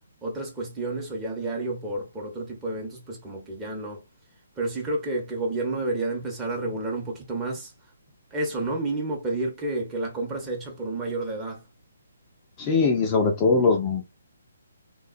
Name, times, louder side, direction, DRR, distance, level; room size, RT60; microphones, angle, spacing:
voice 1, 0.2-4.0 4.6-7.7 8.3-11.6, right 2 dB, 10° right, 0.9 m, -30 dB
voice 2, 12.6-14.0, left 4 dB, 20° left, 0.5 m, -21 dB
3.5 x 2.2 x 2.4 m
figure-of-eight pair, 140°, 0 cm